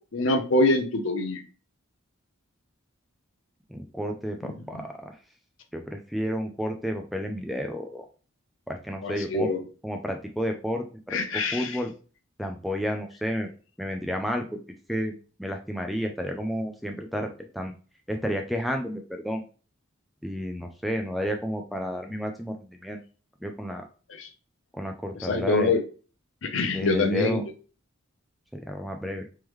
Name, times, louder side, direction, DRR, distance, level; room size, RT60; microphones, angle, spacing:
voice 1, 0.1-1.4 9.0-9.6 11.1-11.8 24.2-24.3 25.2-25.8 26.4-27.4, left 2 dB, 70° left, 5 dB, 0.6 m, -25 dB
voice 2, 3.7-5.2 5.7-8.1 8.7-9.5 9.8-11.2 11.5-11.9 12.4-13.5 13.8-14.6 14.9-15.1 15.4-17.7 18.1-19.4 20.2-23.0 23.4-23.8 24.7-25.7 26.7-27.4 28.5-29.2, equal, ahead, 4 dB, 0.3 m, -31 dB
3.5 x 3.1 x 3.0 m, 0.37 s
head